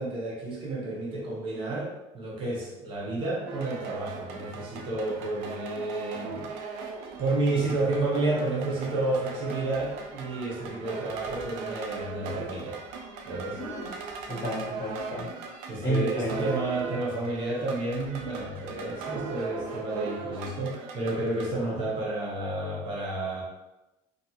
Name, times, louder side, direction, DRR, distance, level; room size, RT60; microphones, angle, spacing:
voice 1, 0.0-6.5 7.2-12.8 13.3-13.6 15.7-23.4, right 2 dB, 45° right, -4 dB, 0.7 m, -31 dB
sound 1, 3.5-21.5, right 4 dB, 85° right, 0.4 m, -39 dB
voice 2, 13.5-13.9 14.3-15.3 15.8-16.4 21.5-21.9, right 1 dB, 20° left, -8 dB, 0.9 m, -32 dB
2.6 x 2.3 x 2.7 m, 0.96 s
cardioid pair, 150°, 12 cm